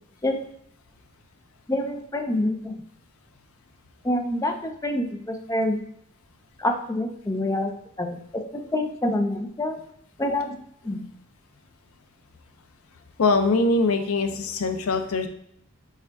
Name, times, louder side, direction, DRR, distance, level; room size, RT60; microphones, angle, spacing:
voice 1, 1.7-2.7 4.0-5.8 6.6-7.7 8.0-9.8 10.2-10.6 10.8-11.0, left 1 dB, 15° left, 4 dB, 0.5 m, -26 dB
voice 2, 13.2-15.3, left 3 dB, 70° left, 7 dB, 0.5 m, -22 dB
6.5 x 2.4 x 3.4 m, 0.69 s
head